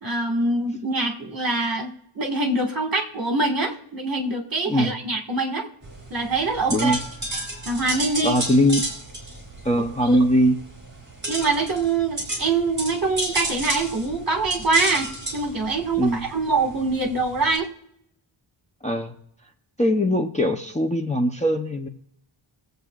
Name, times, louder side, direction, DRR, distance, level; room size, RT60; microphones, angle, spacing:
voice 1, 0.0-5.7 6.1-7.0 7.7-8.4 10.1-10.2 11.3-17.7, right 3 dB, 45° right, 3 dB, 1.9 m, -24 dB
sound 1, 5.8-17.6, right 1 dB, 20° right, 4.2 m, -33 dB
voice 2, 6.7-7.0 8.2-8.8 9.6-10.6 16.0-16.2 18.8-19.1 19.8-21.9, equal, 15° left, 1 dB, 0.7 m, -21 dB
22.0 x 8.0 x 2.4 m, 0.73 s
wide cardioid pair, 130°, 49 cm